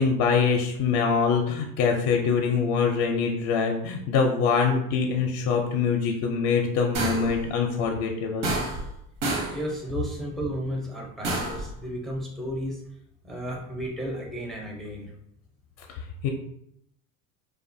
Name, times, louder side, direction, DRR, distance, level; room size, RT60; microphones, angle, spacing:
voice 1, 0.0-8.5 15.9-16.3, left 5 dB, 55° left, 2 dB, 0.5 m, -24 dB
sound 1, 6.9-7.4 8.4-8.9 9.2-9.6 11.2-11.7, right 2 dB, 65° right, 0.9 m, -28 dB
voice 2, 9.5-12.8 13.2-15.1, equal, ahead, -2 dB, 0.4 m, -33 dB
2.6 x 2.2 x 2.5 m, 0.74 s
supercardioid pair, 95°, 40 cm